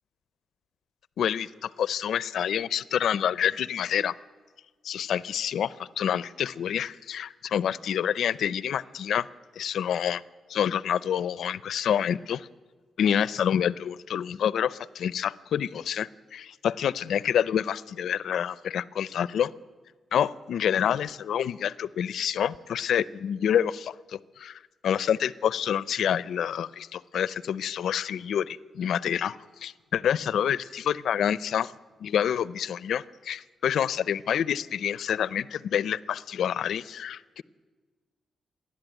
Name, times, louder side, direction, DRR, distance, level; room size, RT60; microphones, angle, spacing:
voice 1, 1.2-4.1 4.8-9.3 9.6-10.2 10.5-12.5 13.0-19.5 20.1-31.7 32.0-37.4, left 9 dB, 75° left, 19 dB, 0.6 m, -27 dB
29.0 x 11.5 x 9.1 m, 1.4 s
wide cardioid pair, 145°, 0 cm